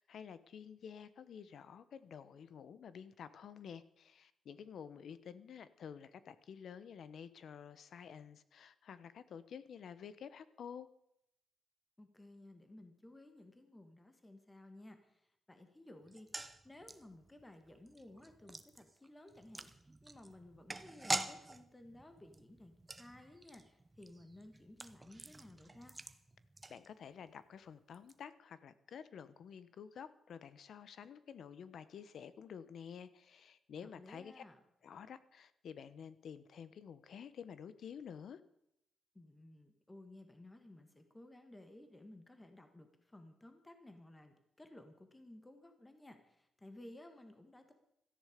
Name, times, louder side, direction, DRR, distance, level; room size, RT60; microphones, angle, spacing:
voice 1, 0.0-10.9 26.7-34.4 34.8-38.4, left 7 dB, 55° left, 14 dB, 0.9 m, -51 dB
voice 2, 12.0-15.2 15.5-16.3 16.6-19.7 20.0-25.9 33.8-34.6 39.1-47.7, left 1 dB, 10° left, 7 dB, 1.5 m, -56 dB
sound 1, 16.1-27.3 27.6-27.7 27.9-28.1, right 2 dB, 15° right, 0.8 m, -46 dB
17.0 x 14.0 x 5.1 m, 0.79 s
wide cardioid pair, 160°, 0 cm